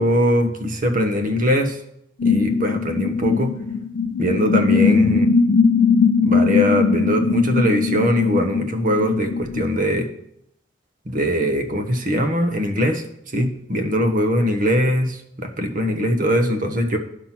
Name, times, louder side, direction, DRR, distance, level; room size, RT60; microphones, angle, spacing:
voice 1, 0.0-1.8 2.2-3.5 4.2-5.3 6.2-10.1 11.1-13.0 13.3-17.0, equal, 45° right, 6 dB, 1.1 m, -21 dB
sound 1, 2.2-9.8, left 5 dB, 85° left, 0.4 m, -19 dB
10.5 x 5.8 x 5.9 m, 0.75 s
head